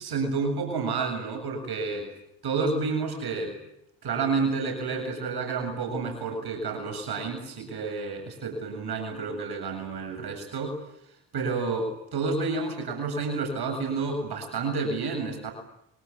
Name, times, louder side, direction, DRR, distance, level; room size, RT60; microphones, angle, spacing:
voice 1, 0.0-2.1 2.4-3.6 4.0-10.8 11.3-15.5, right 4 dB, 55° right, 4 dB, 7.6 m, -30 dB
25.0 x 24.0 x 9.8 m, 0.77 s
hypercardioid pair, 60°, 46 cm